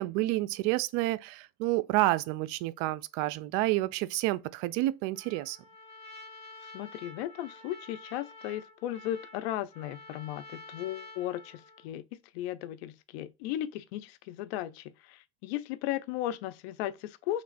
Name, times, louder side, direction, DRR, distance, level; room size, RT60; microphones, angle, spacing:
voice 1, 0.0-5.6, right 18 dB, 70° right, 0.5 m, -29 dB
Trumpet, 5.1-11.9, left 2 dB, 20° left, 1.7 m, -49 dB
voice 2, 6.7-12.0 12.3-17.4, left 13 dB, 85° left, 0.5 m, -36 dB
3.2 x 3.0 x 4.0 m
supercardioid pair, 90°, 31 cm